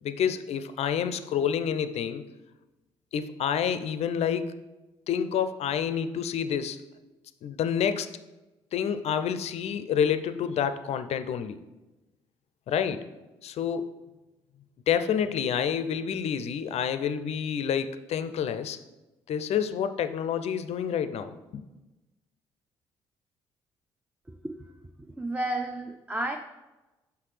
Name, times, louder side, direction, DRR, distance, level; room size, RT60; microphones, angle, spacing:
voice 1, 0.0-2.3 3.1-4.5 5.1-6.8 7.4-8.1 8.7-11.6 12.7-13.1 13.4-13.9 14.9-18.8 19.3-21.6, left 8 dB, 55° left, 11 dB, 0.4 m, -28 dB
voice 2, 25.2-26.4, right 1 dB, 10° right, 5 dB, 0.4 m, -31 dB
5.7 x 5.5 x 3.2 m, 1.1 s
hypercardioid pair, 45°, 13 cm